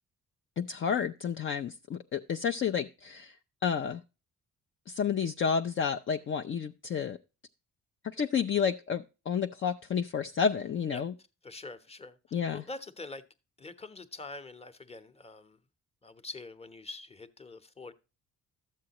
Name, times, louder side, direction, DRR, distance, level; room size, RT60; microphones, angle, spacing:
voice 1, 0.6-3.4 3.6-4.0 4.9-7.2 8.0-11.1 12.3-12.6, left 7 dB, 40° left, 6 dB, 0.5 m, -30 dB
voice 2, 11.4-13.2 13.6-15.6 16.0-17.9, left 3 dB, 20° left, 10 dB, 1.0 m, -45 dB
12.5 x 7.5 x 3.0 m, 0.30 s
cardioid pair, 90°, 30 cm